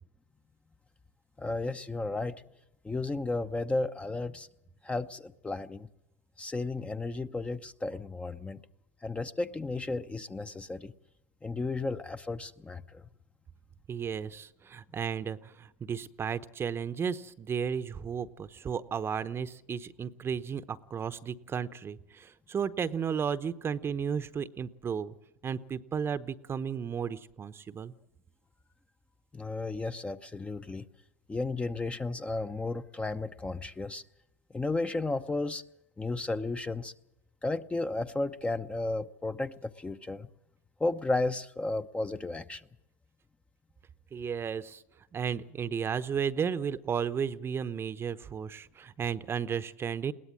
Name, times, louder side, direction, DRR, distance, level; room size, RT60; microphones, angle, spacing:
voice 1, 1.4-2.4 2.8-4.5 4.8-5.9 6.4-8.6 9.0-10.9 11.4-13.1 29.3-30.9 31.3-34.0 34.5-35.6 36.0-36.9 37.4-40.3 40.8-42.7, left 2 dB, 15° left, 9 dB, 0.8 m, -33 dB
voice 2, 13.9-25.1 25.4-27.9 44.1-44.8 45.1-50.1, right 7 dB, 30° right, 13 dB, 0.9 m, -34 dB
21.5 x 17.5 x 7.5 m, 0.85 s
hypercardioid pair, 95°, 9 cm